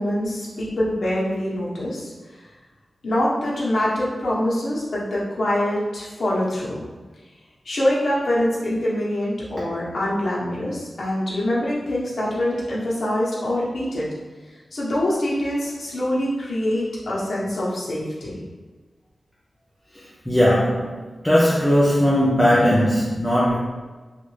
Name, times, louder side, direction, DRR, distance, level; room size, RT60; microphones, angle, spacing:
voice 1, 0.0-2.1 3.0-6.8 7.6-14.1 14.7-18.4, left 1 dB, 75° left, -7 dB, 1.0 m, -24 dB
voice 2, 20.3-21.0 21.2-23.6, equal, 5° left, -7 dB, 0.5 m, -18 dB
3.3 x 2.5 x 3.2 m, 1.3 s
wide cardioid pair, 120°, 0 cm